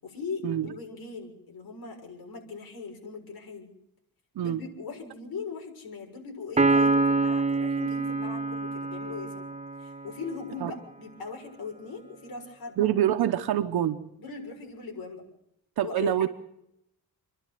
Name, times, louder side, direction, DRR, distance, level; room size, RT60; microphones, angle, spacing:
voice 1, 0.0-3.7 4.4-9.3 9.8-12.9 14.2-15.2 15.8-16.3, left 4 dB, 80° left, 1 dB, 6.7 m, -39 dB
Piano, 6.6-10.2, right 3 dB, 20° right, 0.8 m, -26 dB
voice 2, 12.8-14.0 15.8-16.3, right 11 dB, 90° right, 6 dB, 1.0 m, -25 dB
28.5 x 11.5 x 9.3 m, 0.81 s
wide cardioid pair, 125°, 36 cm